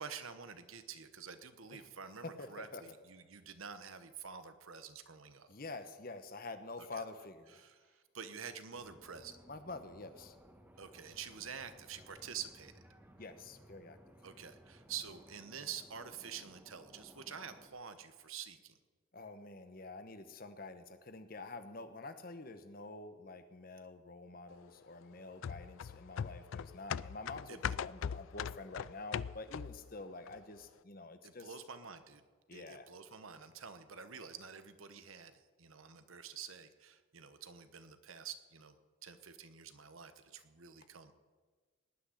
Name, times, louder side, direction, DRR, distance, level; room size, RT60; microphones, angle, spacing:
voice 1, 0.0-5.5 6.8-7.0 7.5-9.4 10.8-12.7 14.2-18.7 27.5-27.8 31.2-32.2 32.5-38.8 39.0-41.1, right 7 dB, 80° right, 10 dB, 1.1 m, -48 dB
voice 2, 2.2-2.8 5.5-7.6 9.5-10.4 13.2-14.0 19.1-31.5 32.5-32.9, left 3 dB, 45° left, 9 dB, 1.0 m, -47 dB
sound 1, 8.7-17.7, equal, 10° right, 1.3 m, -60 dB
sound 2, 25.4-29.9 30.3-30.4, left 8 dB, 75° left, 0.3 m, -40 dB
18.5 x 6.3 x 9.9 m, 1.4 s
head